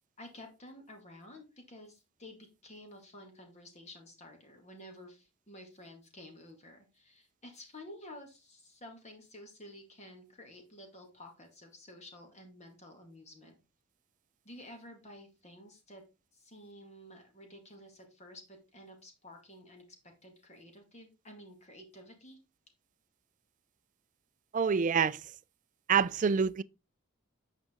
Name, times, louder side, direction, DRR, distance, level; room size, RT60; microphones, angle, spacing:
voice 1, 0.2-13.6 14.4-16.0 16.3-19.8 20.2-22.4, left 1 dB, 30° left, 2.1 m, -52 dB
voice 2, 24.5-25.2 25.9-26.6, right 6 dB, 35° right, 0.3 m, -26 dB
8.8 x 5.1 x 3.7 m
head